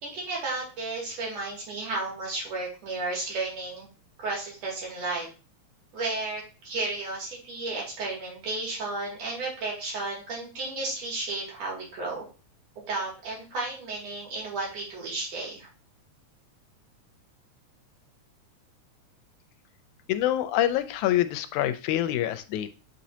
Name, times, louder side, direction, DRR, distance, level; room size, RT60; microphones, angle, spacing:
voice 1, 0.0-3.9 4.2-5.3 5.9-12.3 12.8-15.7, right 2 dB, 60° right, -3 dB, 3.5 m, -33 dB
voice 2, 20.1-22.7, left 12 dB, 85° left, 10 dB, 2.0 m, -26 dB
8.2 x 4.2 x 2.8 m, 0.34 s
omnidirectional pair, 3.4 m